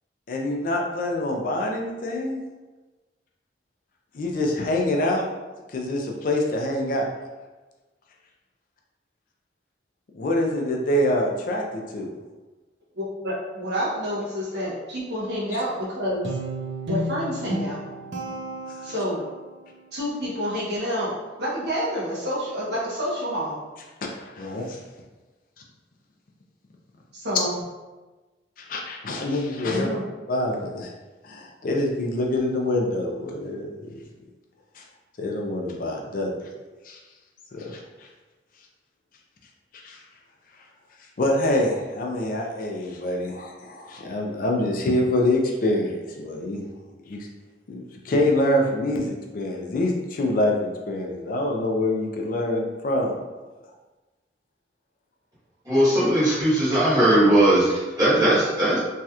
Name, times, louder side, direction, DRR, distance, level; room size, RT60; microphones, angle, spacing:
voice 1, 0.3-2.4 4.1-5.3 5.7-7.1 10.1-12.1 24.2-24.8 28.6-29.9 30.3-30.9 31.2-34.0 34.7-34.8 35.2-36.3 36.8-37.0 37.5-38.1 39.7-40.0 41.2-46.7 47.1-47.3 47.7-53.2, left 1 dB, 50° left, 0 dB, 0.4 m, -25 dB
voice 2, 12.9-16.3 16.9-17.8 18.8-19.2 19.9-23.6 27.1-27.6 29.6-30.0, equal, 65° right, -7 dB, 1.1 m, -28 dB
Guitar, 16.2-19.5, right 1 dB, 80° right, 0.6 m, -32 dB
voice 3, 55.6-58.8, right 1 dB, 20° right, -11 dB, 1.4 m, -19 dB
3.1 x 2.8 x 2.3 m, 1.2 s
head